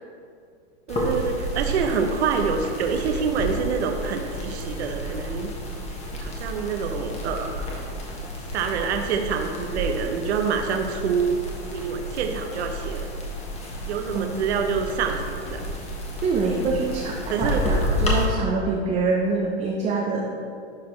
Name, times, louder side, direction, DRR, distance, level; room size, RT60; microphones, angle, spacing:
sound 1, 0.9-18.3, equal, 20° left, 1.3 m, -31 dB
voice 1, 0.9-5.5 6.2-7.7 8.5-11.4 11.7-13.1 13.9-15.6 17.3-17.6, right 6 dB, 75° right, 4 dB, 0.8 m, -26 dB
voice 2, 14.1-14.7 16.2-20.3, right 3 dB, 20° right, -1 dB, 0.6 m, -25 dB
11.5 x 4.2 x 3.2 m, 2.3 s
hypercardioid pair, 125°, 33 cm